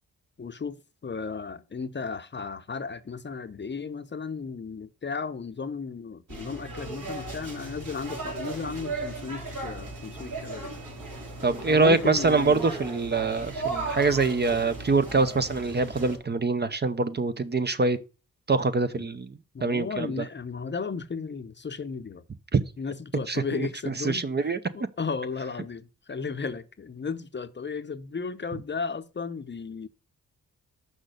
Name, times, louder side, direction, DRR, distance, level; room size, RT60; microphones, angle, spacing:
voice 1, 0.4-0.8 1.0-10.7 11.7-12.7 19.0-19.1 19.5-22.2 22.8-29.9, left 5 dB, 35° left, 0.7 m, -35 dB
sound 1, 6.3-16.2, right 2 dB, 70° right, 4.2 m, -36 dB
voice 2, 11.4-18.0 18.5-19.3 19.6-20.1 22.5-22.6 23.3-24.6, right 3 dB, 30° right, 0.7 m, -24 dB
6.2 x 5.4 x 6.5 m
cardioid pair, 65°, 33 cm